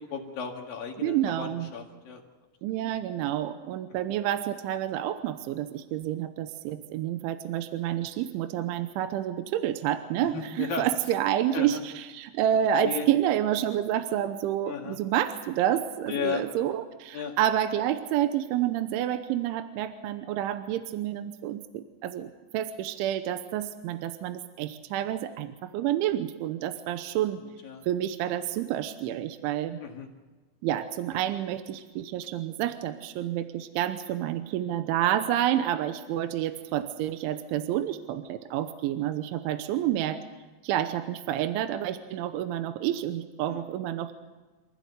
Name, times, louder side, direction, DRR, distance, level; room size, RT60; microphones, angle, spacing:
voice 1, 0.0-2.2 2.8-2.9 10.2-10.9 11.5-11.8 12.8-13.0 14.7-15.0 16.1-16.4 17.1-17.3 27.6-27.8 29.8-30.1 43.5-43.6, left 6 dB, 55° left, 2 dB, 3.1 m, -34 dB
voice 2, 1.0-1.7 2.6-27.4 27.8-29.8 30.6-40.2 40.6-44.1, right 11 dB, 80° right, 9 dB, 3.2 m, -29 dB
28.0 x 15.5 x 8.1 m, 1.3 s
omnidirectional pair, 5.8 m